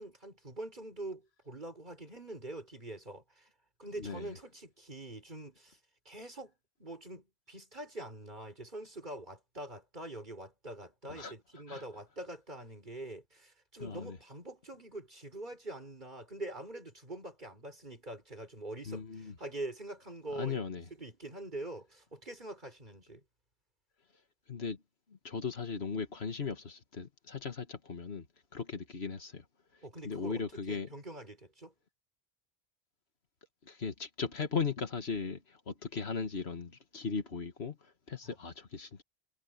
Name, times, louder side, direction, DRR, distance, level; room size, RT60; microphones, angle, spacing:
voice 1, 0.0-3.5 3.8-5.8 6.1-6.5 6.8-20.6 21.0-23.2 29.8-31.7, right 1 dB, 45° right, 5.4 m, -44 dB
voice 2, 4.0-4.4 11.1-11.3 11.7-11.8 13.8-14.2 18.8-19.4 20.3-20.9 24.5-24.8 25.1-28.3 28.5-29.4 29.7-30.9 33.7-39.0, left 5 dB, 70° left, 1.8 m, -38 dB
omnidirectional pair, 1.1 m